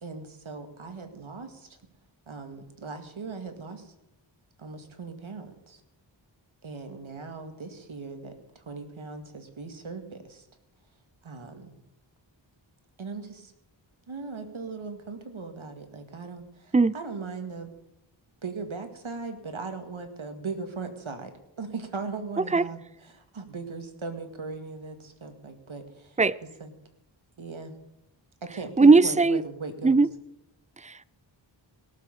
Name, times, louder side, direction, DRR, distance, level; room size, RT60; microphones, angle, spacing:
voice 1, 0.0-1.7 2.3-3.9 4.6-5.8 6.6-10.5 11.2-11.7 13.0-13.5 14.1-17.7 18.4-26.2 26.6-26.7 27.4-27.8 28.4-30.0, right 4 dB, 90° right, 2.2 m, -39 dB
voice 2, 28.8-29.4 29.8-30.1 30.8-31.0, right 3 dB, 15° right, 0.4 m, -18 dB
18.0 x 7.7 x 8.8 m
wide cardioid pair, 65°, 47 cm